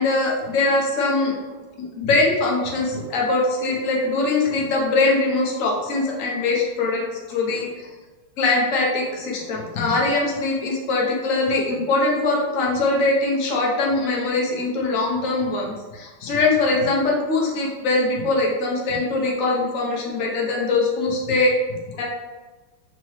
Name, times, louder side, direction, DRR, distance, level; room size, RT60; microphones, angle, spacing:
voice 1, 0.0-1.3 1.8-7.9 8.4-22.0, left 2 dB, 55° left, -2 dB, 1.1 m, -22 dB
4.6 x 2.9 x 3.1 m, 1.2 s
omnidirectional pair, 1.9 m